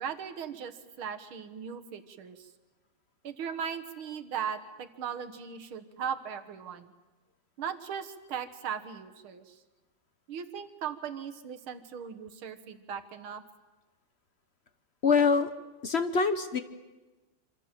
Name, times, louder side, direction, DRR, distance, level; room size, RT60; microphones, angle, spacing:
voice 1, 0.0-2.5 3.2-6.9 7.6-9.6 10.3-13.4, right 7 dB, 90° right, 9 dB, 2.2 m, -38 dB
voice 2, 15.0-15.5 15.8-16.6, left 5 dB, 45° left, 10 dB, 0.9 m, -24 dB
26.5 x 26.0 x 7.5 m, 1.2 s
omnidirectional pair, 2.2 m